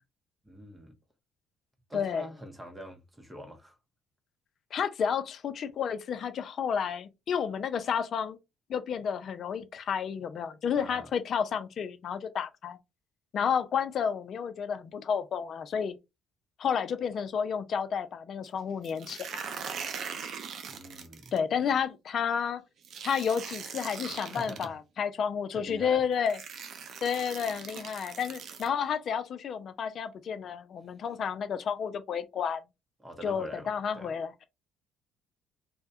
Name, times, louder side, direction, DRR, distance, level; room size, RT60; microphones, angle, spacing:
voice 1, 0.4-0.9 1.9-3.8 10.8-11.1 20.7-21.3 24.3-24.8 25.5-26.1 33.0-34.1, equal, 15° right, 0.7 m, -44 dB
voice 2, 1.9-2.2 4.7-8.4 8.7-12.8 13.3-16.0 16.6-19.4 21.3-22.6 23.0-26.4 27.0-32.6 33.2-34.3, left 7 dB, 55° left, 0.4 m, -31 dB
sound 1, 18.8-21.4 22.8-24.7 25.7-25.8 26.2-28.7, right 6 dB, 60° right, 0.5 m, -40 dB
2.2 x 2.1 x 2.7 m
supercardioid pair, 65°, 0 cm